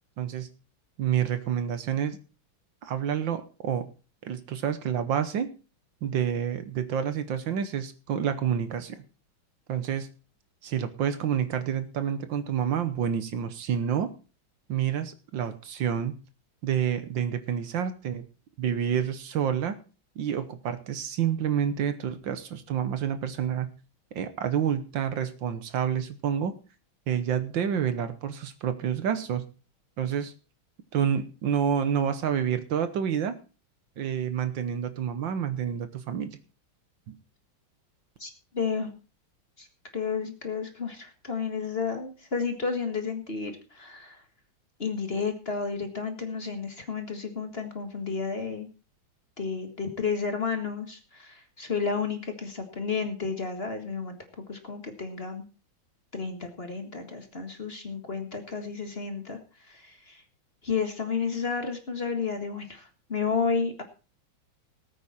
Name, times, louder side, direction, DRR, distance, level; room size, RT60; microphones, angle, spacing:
voice 1, 0.2-0.5 1.0-2.2 2.8-3.8 4.2-5.5 6.0-9.0 9.7-10.1 10.6-14.1 14.7-16.2 16.6-18.2 18.6-19.8 20.1-23.7 24.1-26.5 27.1-29.4 30.0-30.3 30.9-33.3 34.0-36.4 37.1-37.2, right 8 dB, 70° right, 11 dB, 1.7 m, -28 dB
voice 2, 38.2-38.9 39.6-39.7 39.9-44.2 44.8-48.7 49.4-54.2 54.5-55.4 56.1-60.2 60.6-63.8, left 5 dB, 30° left, 6 dB, 1.7 m, -32 dB
19.0 x 8.7 x 4.2 m, 0.34 s
omnidirectional pair, 2.2 m